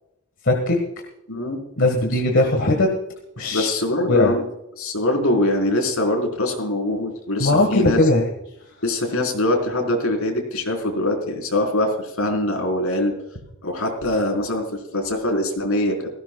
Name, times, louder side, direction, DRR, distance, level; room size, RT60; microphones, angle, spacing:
voice 1, 0.4-0.8 1.8-2.9 3.4-3.7 4.1-4.3 7.4-8.3, left 2 dB, 55° left, 3 dB, 1.7 m, -19 dB
voice 2, 1.3-1.6 2.0-2.2 3.5-4.5 4.8-8.0 8.8-13.1 13.6-16.1, left 1 dB, 75° left, 2 dB, 4.4 m, -23 dB
18.5 x 16.5 x 2.3 m, 0.88 s
head